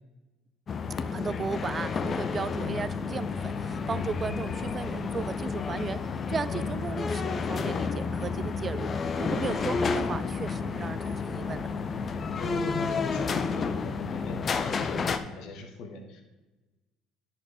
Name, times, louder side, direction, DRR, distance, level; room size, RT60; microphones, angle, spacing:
sound 1, 0.7-15.2, left 5 dB, 40° left, 0.6 m, -31 dB
voice 1, 1.1-6.0 6.3-8.9 9.2-11.7, right 5 dB, 35° right, 16 dB, 0.4 m, -35 dB
voice 2, 12.4-16.2, left 3 dB, 70° left, 3 dB, 1.4 m, -39 dB
10.5 x 4.5 x 4.9 m, 1.1 s
supercardioid pair, 80°, 0 cm